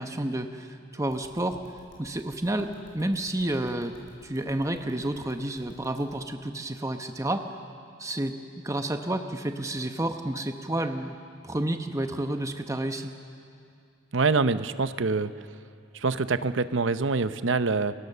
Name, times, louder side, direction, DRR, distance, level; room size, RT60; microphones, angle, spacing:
voice 1, 0.0-1.6 2.0-3.9 4.2-7.4 8.0-8.4 8.6-11.2 11.4-13.1, right 1 dB, 15° right, 6 dB, 0.9 m, -30 dB
sound 1, 1.1-6.1, left 1 dB, 75° left, 5.5 m, -54 dB
voice 2, 14.1-15.3 15.9-17.9, right 4 dB, 70° right, 12 dB, 0.8 m, -25 dB
29.5 x 23.0 x 6.8 m, 2.4 s
head